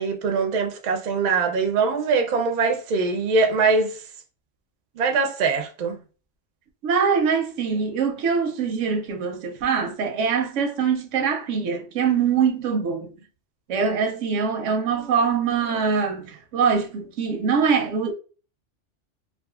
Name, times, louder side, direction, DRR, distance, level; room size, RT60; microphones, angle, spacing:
voice 1, 0.0-4.0 5.0-6.0, right 4 dB, 55° right, 0.5 m, -22 dB
voice 2, 6.8-13.1 13.7-18.1, right 6 dB, 85° right, 0.9 m, -23 dB
2.4 x 2.3 x 2.3 m
omnidirectional pair, 1.2 m